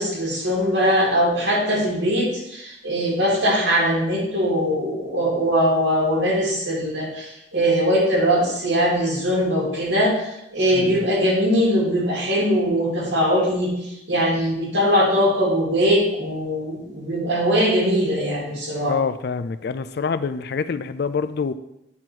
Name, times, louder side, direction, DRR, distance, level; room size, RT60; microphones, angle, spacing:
voice 1, 0.0-18.9, equal, 85° right, -3 dB, 2.6 m, -21 dB
voice 2, 18.8-21.5, left 5 dB, 60° left, 13 dB, 0.4 m, -26 dB
8.7 x 3.0 x 6.2 m, 0.82 s
head